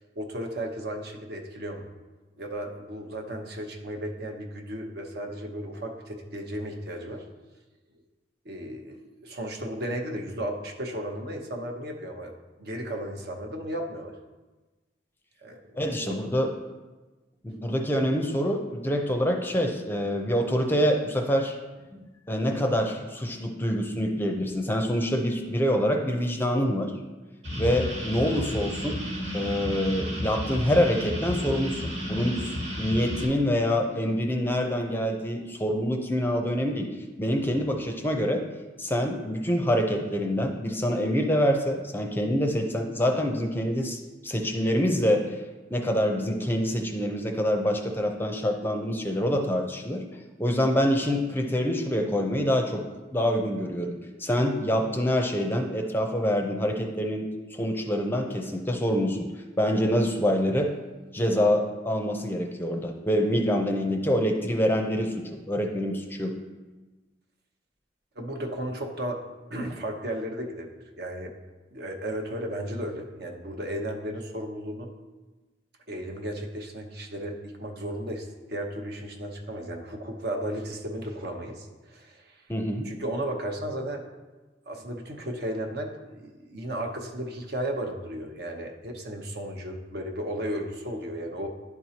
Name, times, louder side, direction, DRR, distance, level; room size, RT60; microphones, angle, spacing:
voice 1, 0.2-1.9 2.4-7.2 8.4-12.3 12.6-14.1 15.4-16.3 68.2-69.2 69.5-70.7 71.0-71.3 71.7-74.9 75.9-82.3 82.8-84.1 84.7-91.5, right 1 dB, 60° right, 2 dB, 0.8 m, -34 dB
voice 2, 15.8-16.5 17.4-21.6 21.9-26.9 27.6-29.0 29.3-36.9 37.2-38.4 38.8-45.4 45.7-50.0 50.4-52.8 53.1-59.3 59.6-60.7 61.1-66.4 82.5-82.9, equal, 10° left, 3 dB, 0.5 m, -26 dB
sound 1, 27.4-33.3, left 1 dB, 90° right, 1.9 m, -32 dB
11.0 x 4.5 x 2.8 m, 1.2 s
head